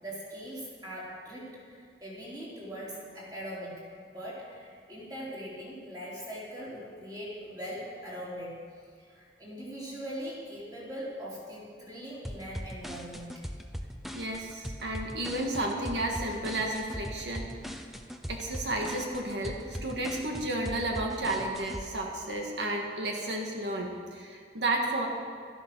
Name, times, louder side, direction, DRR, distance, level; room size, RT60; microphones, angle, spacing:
voice 1, 0.0-8.6 9.1-13.4, equal, 20° right, -6 dB, 3.7 m, -41 dB
sound 1, 12.2-21.8, equal, ahead, 0.6 m, -40 dB
voice 2, 14.1-17.8 18.3-25.1, right 1 dB, 80° right, 1 dB, 1.7 m, -32 dB
12.5 x 10.5 x 6.2 m, 2.1 s
head